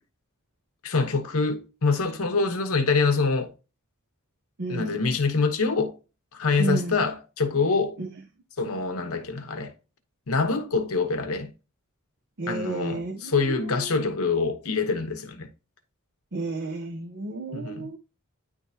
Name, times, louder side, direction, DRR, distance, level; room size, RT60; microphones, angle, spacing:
voice 1, 0.8-3.5 4.7-6.0 6.3-8.0 8.6-9.7 10.3-11.5 12.5-15.5 17.5-17.8, left 4 dB, 75° left, 1.0 m, -25 dB
voice 2, 4.6-5.0 6.6-7.0 8.0-8.1 12.4-13.9 16.3-18.0, right 2 dB, 50° right, 0.7 m, -32 dB
9.8 x 3.6 x 2.7 m
head